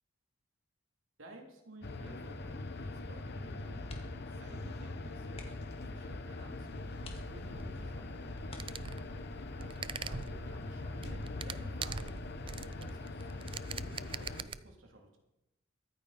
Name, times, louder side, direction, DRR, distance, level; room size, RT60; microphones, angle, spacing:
voice 1, 1.2-3.8 4.3-6.9 7.3-8.9 9.6-12.1 12.4-15.2, right 1 dB, 80° right, 1 dB, 3.0 m, -55 dB
sound 1, 1.8-14.4, left 2 dB, 55° left, 1.0 m, -42 dB
sound 2, 3.8-4.4 4.7-4.8 5.3-5.8 6.4-6.5 7.0-7.8 8.4-9.2 10.8-11.1 11.5-11.6, left 2 dB, 30° left, 1.8 m, -51 dB
sound 3, 6.1-14.6, right 5 dB, 25° right, 0.4 m, -44 dB
23.0 x 9.2 x 4.2 m, 0.94 s
head